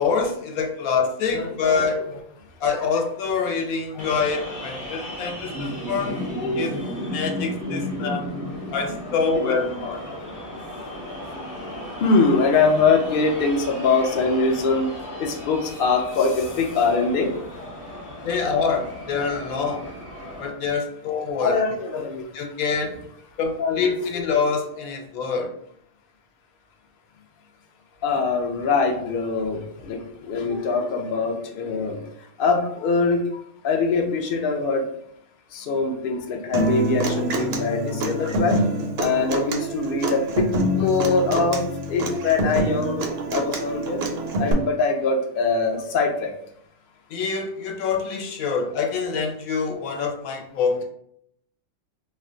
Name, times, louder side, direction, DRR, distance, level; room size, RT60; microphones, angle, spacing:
voice 1, 0.0-2.0 2.6-6.1 6.6-6.7 7.1-8.3 8.7-10.2 18.2-19.9 20.4-21.6 22.3-22.9 23.4-25.5 47.1-50.8, left 5 dB, 80° left, 3 dB, 1.0 m, -25 dB
voice 2, 1.3-1.8 2.8-2.9 3.9-4.2 5.9-6.0 6.3-6.8 9.2-9.6 12.0-14.9 15.2-17.3 21.4-22.2 23.6-23.8 24.2-24.4 28.0-32.1 32.4-33.2 33.6-34.9 35.5-38.6 39.0-44.0 44.4-46.3, left 4 dB, 60° left, 2 dB, 0.5 m, -23 dB
sound 1, 4.0-20.5, equal, 40° left, 0.9 m, -34 dB
Human voice / Acoustic guitar, 36.5-44.5, right 1 dB, 65° right, 0.6 m, -26 dB
2.5 x 2.2 x 3.6 m, 0.69 s
omnidirectional pair, 1.5 m